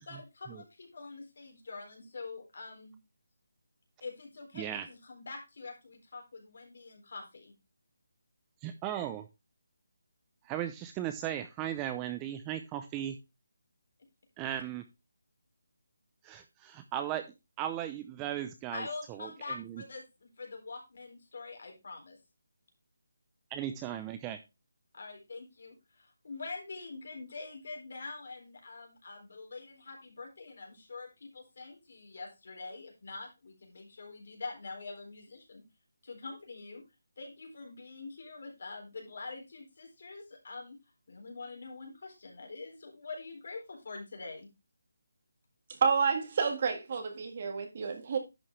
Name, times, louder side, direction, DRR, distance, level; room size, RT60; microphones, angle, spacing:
voice 1, 0.0-2.9 4.0-7.5 18.7-22.2 24.9-35.6 36.0-36.8 37.2-40.8 41.1-44.5, left 3 dB, 55° left, 4.1 m, -45 dB
voice 2, 8.6-9.3 10.4-13.2 14.4-14.8 16.2-17.3 17.6-18.9 19.2-19.3 19.6-19.8 23.5-24.4, right 11 dB, 15° right, 0.5 m, -36 dB
voice 3, 45.8-48.2, right 5 dB, 40° right, 1.8 m, -29 dB
11.0 x 5.9 x 3.2 m
figure-of-eight pair, 170°, 0 cm